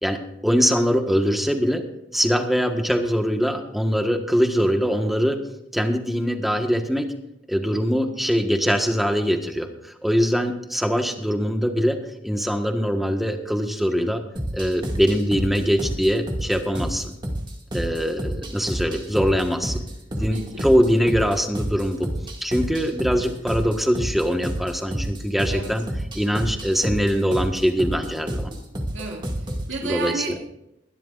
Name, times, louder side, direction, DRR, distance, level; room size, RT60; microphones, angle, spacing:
voice 1, 0.0-1.8 2.1-5.4 5.7-7.1 7.5-14.2 14.5-17.1 17.7-19.8 20.1-22.1 22.4-25.8 26.1-28.5 29.8-30.4, equal, ahead, 4 dB, 1.4 m, -22 dB
sound 1, 14.4-29.7, equal, 25° right, 2.1 m, -30 dB
voice 2, 20.2-20.7 23.1-23.3 25.5-25.7 28.9-30.4, right 4 dB, 85° right, 0 dB, 2.3 m, -33 dB
22.5 x 12.0 x 2.5 m, 0.83 s
head